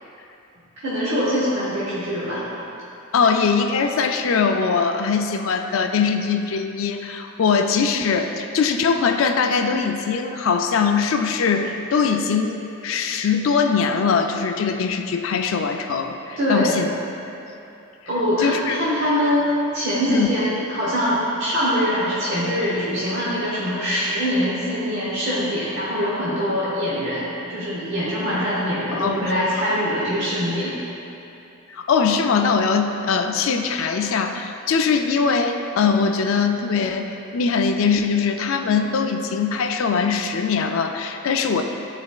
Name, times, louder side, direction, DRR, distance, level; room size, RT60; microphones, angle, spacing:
voice 1, 0.8-2.4 3.2-3.3 16.4-16.8 18.1-30.8, equal, 60° right, -9 dB, 1.1 m, -23 dB
voice 2, 3.1-16.9 18.4-18.8 20.1-20.3 28.9-29.3 31.7-41.6, left 5 dB, 65° left, 5 dB, 0.4 m, -21 dB
11.0 x 4.1 x 2.4 m, 2.8 s
head